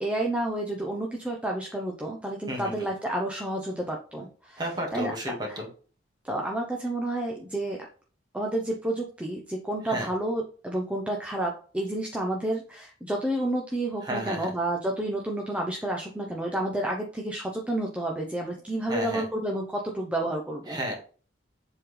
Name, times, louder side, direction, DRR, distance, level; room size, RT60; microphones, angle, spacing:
voice 1, 0.0-4.6 4.9-5.1 5.5-5.6 6.2-7.9 8.3-20.8, right 1 dB, 5° right, 0 dB, 0.8 m, -30 dB
voice 2, 2.5-2.9 4.6-5.7 9.8-10.1 14.0-14.5 18.9-19.2 20.7-20.9, equal, 25° right, 0 dB, 1.8 m, -32 dB
7.4 x 3.9 x 3.3 m, 0.40 s
head